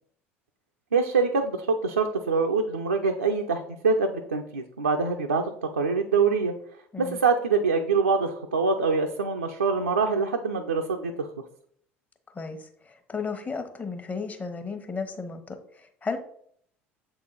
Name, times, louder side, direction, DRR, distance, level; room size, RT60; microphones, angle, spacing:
voice 1, 0.9-6.5 7.0-11.3, right 4 dB, 85° right, 3 dB, 0.5 m, -25 dB
voice 2, 12.3-16.2, left 4 dB, 20° left, 7 dB, 1.0 m, -34 dB
7.1 x 3.9 x 3.9 m, 0.64 s
figure-of-eight pair, 65°, 7 cm